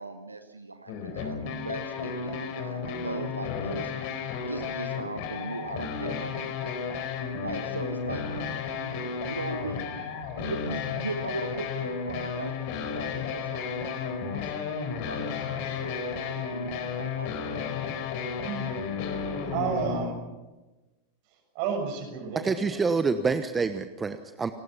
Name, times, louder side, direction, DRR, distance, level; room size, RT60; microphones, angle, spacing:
voice 1, 0.0-6.8 7.4-10.0 10.4-17.5, right 2 dB, 80° right, 8 dB, 1.2 m, -39 dB
sound 1, 0.9-20.1, left 6 dB, 45° left, 4.1 m, -33 dB
voice 2, 18.4-18.7 19.4-20.2 21.5-22.8, right 6 dB, 45° right, 5 dB, 6.7 m, -31 dB
voice 3, 22.4-24.5, right 4 dB, 15° right, 10 dB, 1.1 m, -27 dB
29.5 x 19.0 x 5.9 m, 1.1 s
figure-of-eight pair, 90°, 0 cm